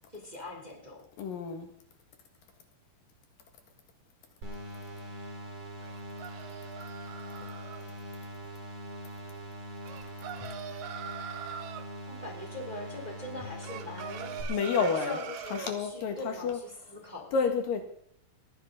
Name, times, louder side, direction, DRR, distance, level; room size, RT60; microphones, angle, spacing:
voice 1, 0.1-1.0 12.1-17.4, left 2 dB, 10° right, 0 dB, 2.9 m, -42 dB
voice 2, 1.2-1.7 14.5-15.2 15.5-16.6 17.3-17.8, left 5 dB, 75° left, 5 dB, 3.5 m, -29 dB
sound 1, 4.4-14.4, right 1 dB, 40° right, 4.8 m, -42 dB
sound 2, 5.8-7.8 9.8-11.9 13.6-15.8, right 9 dB, 70° right, 1.9 m, -42 dB
20.0 x 15.0 x 3.9 m, 0.64 s
omnidirectional pair, 4.1 m